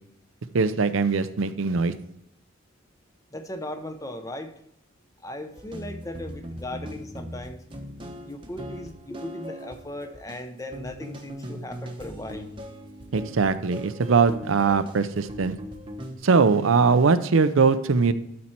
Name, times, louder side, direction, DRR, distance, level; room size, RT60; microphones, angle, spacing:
voice 1, 0.5-1.9 13.1-15.6 16.2-18.1, right 4 dB, 85° right, 12 dB, 0.5 m, -21 dB
voice 2, 3.3-4.5 5.2-7.6 8.2-12.5, left 1 dB, 15° left, 7 dB, 0.7 m, -37 dB
sound 1, 5.6-16.2, equal, 25° right, 0.9 m, -40 dB
12.5 x 4.3 x 4.4 m, 0.74 s
head